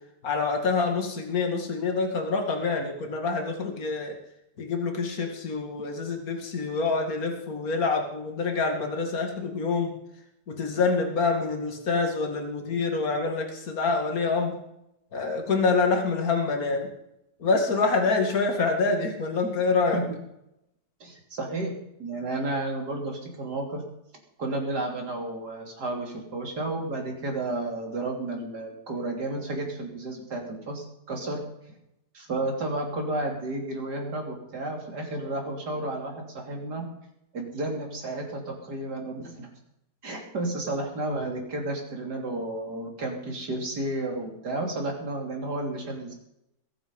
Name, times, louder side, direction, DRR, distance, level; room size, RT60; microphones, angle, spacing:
voice 1, 0.2-4.1 4.6-9.9 10.5-14.5 15.1-16.9 17.4-20.0, left 4 dB, 55° left, 3 dB, 2.7 m, -26 dB
voice 2, 21.0-21.7 22.0-23.8 24.4-31.4 32.1-36.8 37.3-39.5 40.0-46.1, right 2 dB, 65° right, 1 dB, 3.7 m, -32 dB
21.5 x 8.8 x 5.5 m, 0.83 s
omnidirectional pair, 1.9 m